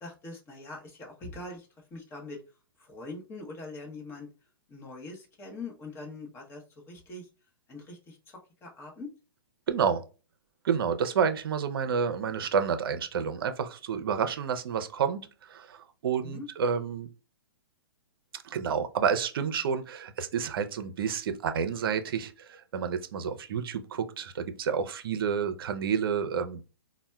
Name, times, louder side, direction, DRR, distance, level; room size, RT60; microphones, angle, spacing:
voice 1, 0.0-2.4 2.8-4.3 4.7-7.3 7.7-8.2 8.6-9.1 16.2-16.5, left 2 dB, 20° left, 0.9 m, -42 dB
voice 2, 9.7-10.0 10.6-17.1 18.4-26.6, right 7 dB, 65° right, 0.5 m, -29 dB
4.1 x 2.1 x 2.2 m
hypercardioid pair, 135°, 13 cm